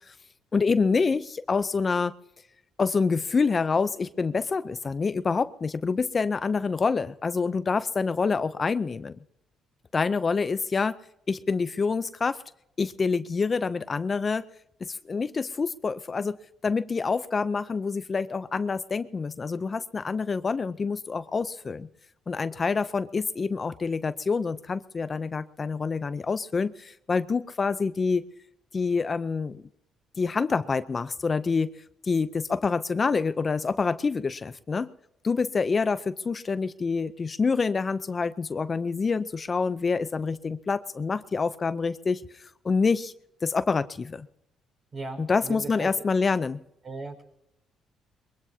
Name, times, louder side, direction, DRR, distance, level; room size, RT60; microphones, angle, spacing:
voice 1, 0.5-2.1 2.8-9.2 9.9-11.0 11.3-12.4 12.8-14.5 14.8-16.4 16.6-21.9 22.3-28.2 28.7-29.6 30.2-31.7 32.0-34.9 35.2-43.1 43.4-44.3 45.2-46.6, left 4 dB, 35° left, 13 dB, 0.5 m, -27 dB
voice 2, 44.9-45.9 46.8-47.2, right 3 dB, 40° right, 4 dB, 5.0 m, -37 dB
22.5 x 22.5 x 2.8 m, 0.82 s
cardioid pair, 95°, 0 cm